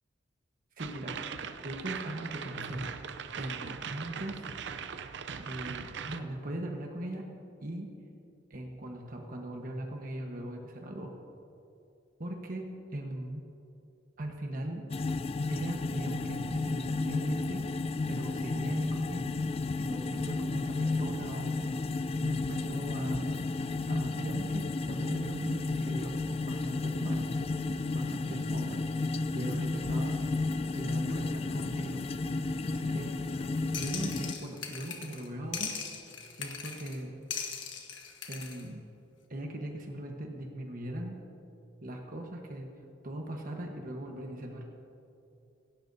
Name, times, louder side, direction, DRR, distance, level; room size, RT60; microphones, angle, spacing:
voice 1, 0.8-1.2 1.6-2.8 3.4-4.5 5.4-7.2 7.6-7.9 8.5-11.1 12.2-13.4 14.2-14.8 15.5-17.6 18.1-19.4 19.8-21.6 22.2-23.3 23.9-27.4 27.9-28.9 29.3-30.2 30.7-32.0 32.7-33.1 33.7-35.7 36.4-37.1 38.3-38.8 39.3-41.2 41.8-42.7 43.0-44.6, right 1 dB, 50° right, 1 dB, 1.2 m, -39 dB
sound 1, 0.8-6.2, right 6 dB, 65° right, 0.6 m, -40 dB
sound 2, 14.9-34.3, left 3 dB, 30° left, 0.3 m, -32 dB
sound 3, 33.7-35.3 35.5-37.0 37.3-38.6, left 7 dB, 75° left, 1.5 m, -39 dB
17.5 x 16.5 x 2.7 m, 2.7 s
head